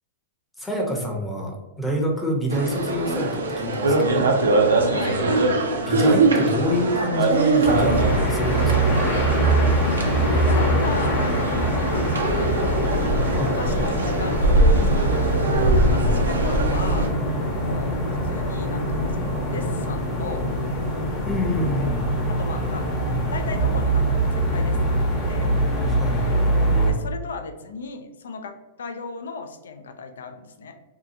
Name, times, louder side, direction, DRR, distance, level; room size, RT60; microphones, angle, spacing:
voice 1, 0.6-4.3 5.2-5.3 5.8-8.9 13.3-13.6 14.8-15.0 15.4-16.1 21.2-22.1 25.9-26.3, equal, 5° left, -1 dB, 0.6 m, -27 dB
sound 1, 2.5-17.1, right 2 dB, 90° right, 0.4 m, -22 dB
voice 2, 4.9-5.2 10.2-12.8 13.4-15.4 15.9-17.1 17.6-18.0 18.2-20.5 22.3-22.9 23.3-25.5 26.9-30.7, left 4 dB, 80° left, 7 dB, 0.4 m, -36 dB
sound 2, 7.6-26.9, right 1 dB, 30° left, 0.9 m, -23 dB
2.7 x 2.3 x 2.5 m, 1.1 s
hypercardioid pair, 120°, 0 cm